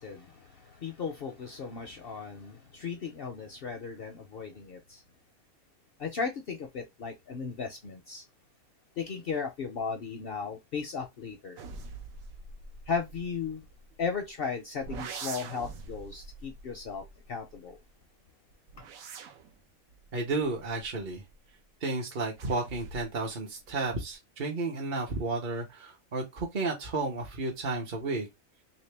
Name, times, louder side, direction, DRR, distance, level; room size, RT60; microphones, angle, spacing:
voice 1, 0.0-5.0 6.0-8.2 9.0-11.6 12.9-13.6 14.0-17.8, left 5 dB, 60° left, 0.6 m, -36 dB
sound 1, 11.6-14.3 14.8-17.9 18.5-21.5 22.4-23.3 23.6-24.1, right 5 dB, 85° right, 1.1 m, -45 dB
voice 2, 20.1-21.2 21.8-28.3, right 3 dB, 45° right, 0.8 m, -32 dB
3.1 x 2.9 x 3.2 m
omnidirectional pair, 1.4 m